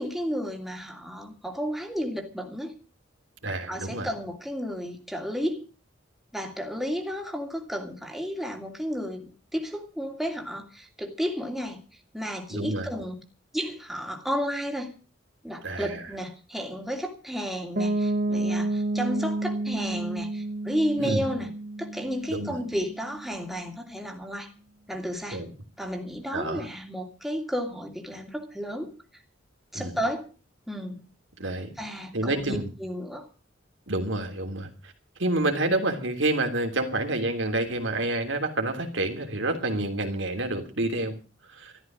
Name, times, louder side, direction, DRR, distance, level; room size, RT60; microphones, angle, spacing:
voice 1, 0.0-2.7 3.7-5.6 6.3-11.8 12.1-13.2 13.5-14.9 15.4-21.5 21.8-24.5 24.9-25.4 25.8-28.9 29.7-30.3 30.7-31.0 31.8-33.3, equal, ahead, 2 dB, 2.7 m, -32 dB
voice 2, 3.4-4.1 12.5-12.9 15.6-16.0 21.0-21.3 22.3-22.6 25.3-25.5 26.3-26.7 29.7-29.9 31.4-31.7 32.1-32.7 33.9-34.7 35.2-41.1 41.5-41.7, right 2 dB, 75° right, 4 dB, 3.2 m, -28 dB
Piano, 17.8-23.5, right 2 dB, 50° right, 1.9 m, -30 dB
13.5 x 13.5 x 6.2 m, 0.35 s
head